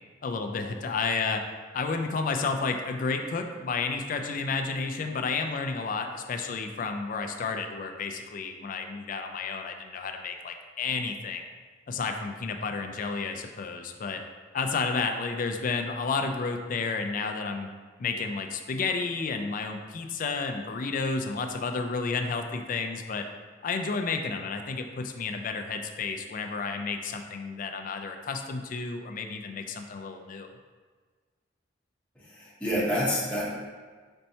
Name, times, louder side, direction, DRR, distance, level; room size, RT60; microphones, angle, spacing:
voice 1, 0.2-1.4 1.7-11.4 11.9-14.2 14.5-17.7 18.0-23.2 23.6-30.5, left 4 dB, 45° left, 5 dB, 0.3 m, -31 dB
voice 2, 32.2-33.4, equal, 5° left, -6 dB, 0.8 m, -28 dB
4.4 x 4.3 x 2.7 m, 1.5 s
head